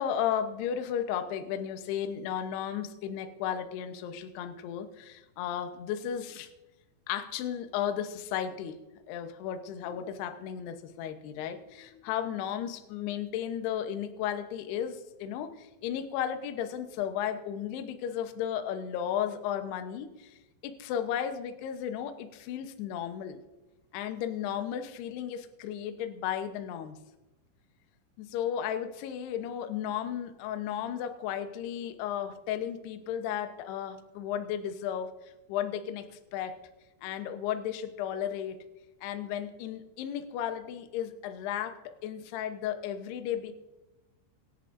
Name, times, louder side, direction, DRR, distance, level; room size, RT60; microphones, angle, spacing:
voice 1, 0.0-6.5 7.1-8.8 9.1-20.4 20.6-23.4 23.9-27.0 28.2-36.1 36.3-36.6 37.0-38.6 39.0-43.5, left 9 dB, 75° left, 8 dB, 2.6 m, -34 dB
26.0 x 10.5 x 2.6 m, 1.1 s
omnidirectional pair, 5.6 m